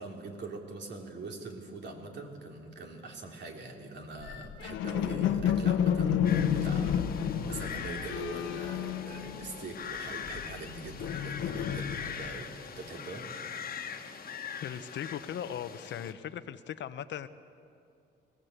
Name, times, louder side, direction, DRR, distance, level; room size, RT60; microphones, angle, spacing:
voice 1, 0.0-13.2, right 3 dB, 60° right, 2 dB, 3.2 m, -43 dB
sound 1, 4.2-9.8 10.1-12.4, left 8 dB, 85° left, 1.2 m, -31 dB
sound 2, 6.2-16.1, left 7 dB, 50° left, 1.5 m, -42 dB
voice 2, 14.6-17.3, left 9 dB, 65° left, 12 dB, 0.9 m, -38 dB
20.5 x 17.0 x 8.2 m, 2.4 s
cardioid pair, 90°, 20 cm